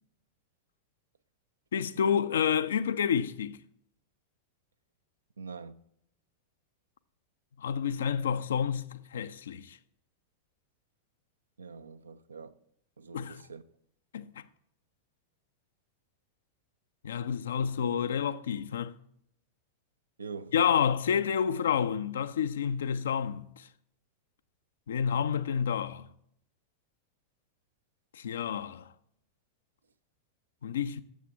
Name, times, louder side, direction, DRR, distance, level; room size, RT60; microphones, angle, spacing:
voice 1, 1.7-3.6 7.6-9.8 13.1-13.4 14.1-14.4 17.0-18.9 20.5-23.7 24.9-26.1 28.1-28.9 30.6-31.0, left 7 dB, 65° left, 0.5 m, -29 dB
voice 2, 5.4-5.8 11.6-12.6 13.0-13.6 20.2-20.5, right 5 dB, 75° right, 0.5 m, -44 dB
8.3 x 7.4 x 4.6 m
figure-of-eight pair, 90°, 0 cm